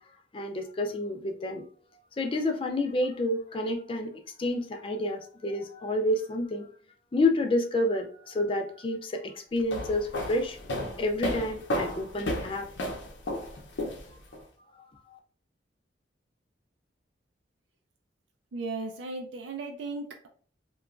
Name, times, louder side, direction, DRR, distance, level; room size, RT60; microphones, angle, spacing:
voice 1, 0.3-1.6 2.2-4.1 4.4-6.7 7.1-10.6 11.0-12.7 15.1-15.2, left 1 dB, 30° left, 3 dB, 0.4 m, -29 dB
sound 1, 9.6-14.4, left 1 dB, 85° left, 0.6 m, -33 dB
voice 2, 18.5-20.3, right 3 dB, 80° right, 2 dB, 0.4 m, -36 dB
2.9 x 2.2 x 2.4 m, 0.44 s
head